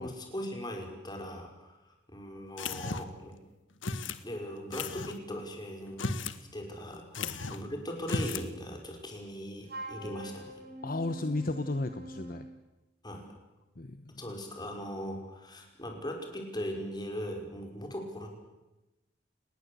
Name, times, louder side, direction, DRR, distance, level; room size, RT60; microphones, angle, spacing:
voice 1, 0.0-3.4 4.2-6.1 6.5-10.5 13.0-13.3 14.2-18.3, equal, 20° left, 2 dB, 5.6 m, -39 dB
sound 1, 2.6-3.2 3.8-4.2 4.7-5.2 5.9-6.4 6.7-6.8 7.1-7.7 8.0-8.5, left 4 dB, 85° left, 1.5 m, -35 dB
Wind instrument woodwind instrument, 9.7-12.5, right 1 dB, 55° right, 5.2 m, -44 dB
voice 2, 10.8-12.5 13.8-14.0, left 2 dB, 50° left, 9 dB, 1.2 m, -34 dB
30.0 x 19.5 x 8.3 m, 1.0 s
head